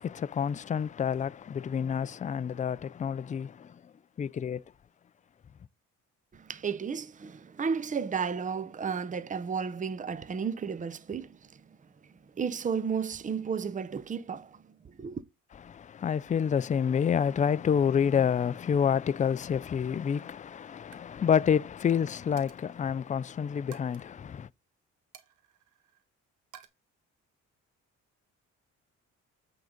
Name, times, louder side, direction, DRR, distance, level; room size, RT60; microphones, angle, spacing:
voice 1, 0.0-3.8 4.2-4.6 15.7-24.5, left 7 dB, 25° left, 0.4 m, -28 dB
voice 2, 6.3-11.6 12.4-15.2, right 6 dB, 25° right, 0.7 m, -33 dB
Coin (dropping), 20.2-20.4 20.8-21.1 21.4-21.6 22.4-22.8 23.7-24.1 25.1-26.0 26.5-26.7, right 10 dB, 85° right, 1.2 m, -54 dB
8.4 x 3.9 x 5.1 m
cardioid pair, 90°, 30 cm